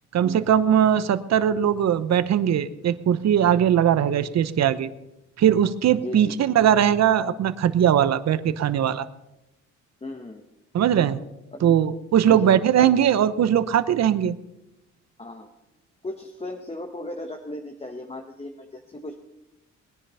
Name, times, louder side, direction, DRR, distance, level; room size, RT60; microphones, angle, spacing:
voice 1, 0.1-4.9 5.4-9.1 10.7-11.2 11.6-14.4, right 9 dB, 60° right, 13 dB, 1.0 m, -20 dB
voice 2, 6.0-6.4 10.0-10.4 11.5-11.8 12.2-12.5 12.8-13.0 15.2-15.5 16.0-19.2, left 1 dB, 20° left, 3 dB, 1.4 m, -36 dB
20.5 x 10.0 x 5.7 m, 0.91 s
cardioid pair, 90°, 30 cm